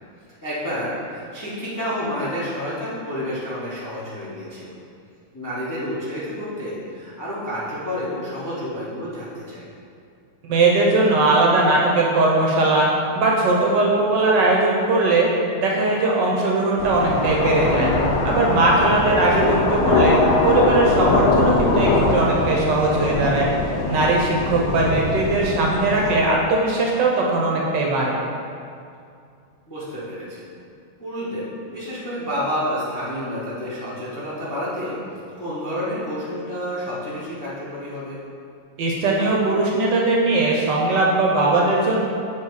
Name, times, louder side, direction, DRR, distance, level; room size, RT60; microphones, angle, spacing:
voice 1, 0.4-4.7 5.3-9.6 19.1-19.5 29.7-30.5 31.0-35.0 35.4-38.2, equal, 15° left, -9 dB, 0.7 m, -29 dB
voice 2, 10.4-12.9 13.1-15.3 15.5-17.9 18.2-23.5 23.9-28.2 38.8-42.0, right 2 dB, 65° right, -2 dB, 1.3 m, -19 dB
sound 1, 16.8-26.2, left 2 dB, 70° left, 1.1 m, -22 dB
7.6 x 3.1 x 4.6 m, 2.4 s
omnidirectional pair, 2.2 m